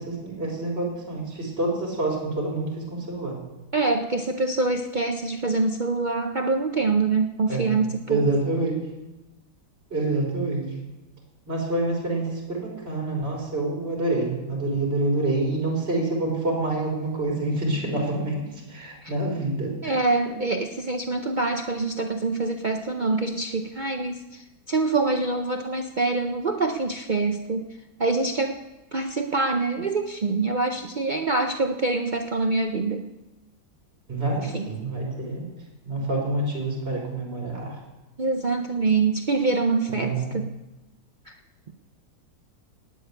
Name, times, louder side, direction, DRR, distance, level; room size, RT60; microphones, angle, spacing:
voice 1, 0.0-3.4 7.5-7.7 8.1-8.8 9.9-10.7 11.5-19.9 34.1-35.5 35.9-37.7 39.9-40.2, right 2 dB, 35° right, -2 dB, 3.9 m, -27 dB
voice 2, 3.7-8.3 19.0-19.1 19.8-27.7 28.0-28.6 28.9-33.0 34.4-34.7 38.2-40.5 41.3-41.4, right 3 dB, 80° right, 5 dB, 0.4 m, -25 dB
16.5 x 6.7 x 9.6 m, 1.0 s
omnidirectional pair, 1.9 m